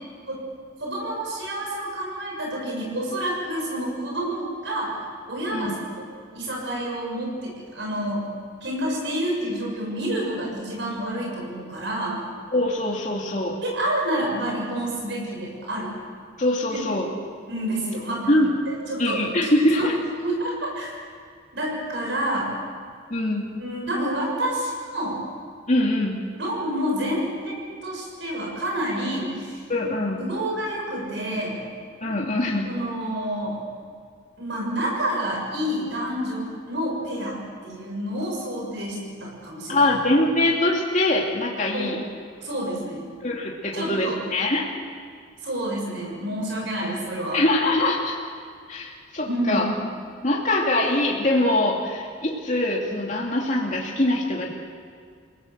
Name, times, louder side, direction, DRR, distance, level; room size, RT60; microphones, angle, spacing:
voice 1, 0.8-5.0 5.3-6.1 6.3-8.3 8.6-12.2 13.6-15.9 16.7-16.9 17.5-18.4 18.7-19.9 20.2-20.9 21.5-22.5 23.6-25.2 26.4-29.6 30.2-31.6 32.6-33.6 34.4-39.9 41.7-42.0 42.4-43.1 43.7-44.2 45.4-47.4 49.2-49.7, right 1 dB, 65° right, -2 dB, 7.0 m, -28 dB
voice 2, 12.5-13.6 16.4-17.1 18.3-18.5 19.0-19.9 23.1-23.5 25.7-26.2 29.7-30.2 32.0-32.7 39.7-42.0 43.2-44.6 47.3-48.2 48.7-49.7 50.2-54.5, left 1 dB, 40° left, -2 dB, 2.7 m, -23 dB
29.5 x 18.0 x 7.6 m, 2.1 s
head